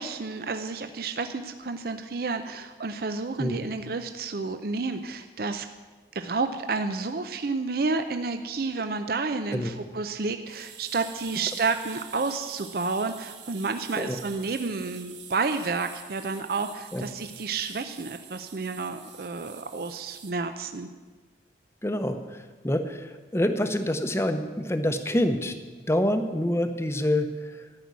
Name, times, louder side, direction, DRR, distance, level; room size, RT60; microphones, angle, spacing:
voice 1, 0.0-5.7 6.1-20.9, right 4 dB, 55° right, 8 dB, 0.5 m, -30 dB
sound 1, 10.5-20.3, right 9 dB, 75° right, 1.3 m, -46 dB
voice 2, 21.8-25.5 25.9-27.7, left 1 dB, 15° left, 8 dB, 0.8 m, -27 dB
13.0 x 6.1 x 9.4 m, 1.4 s
head